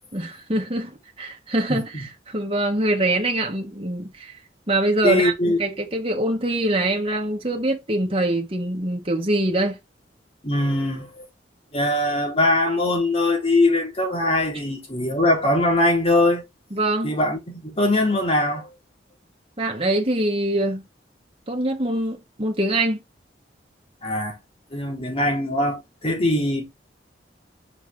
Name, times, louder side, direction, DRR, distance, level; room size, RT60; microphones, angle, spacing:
voice 1, 0.1-4.3 4.7-5.3 5.6-9.8 16.7-17.2 19.6-20.8 21.5-23.0, right 1 dB, 30° right, 1.7 m, -24 dB
voice 2, 5.0-5.6 10.4-11.2 11.7-16.4 17.0-18.7 24.0-24.4 24.7-26.6, left 1 dB, 35° left, 3.6 m, -21 dB
6.0 x 6.0 x 3.4 m
head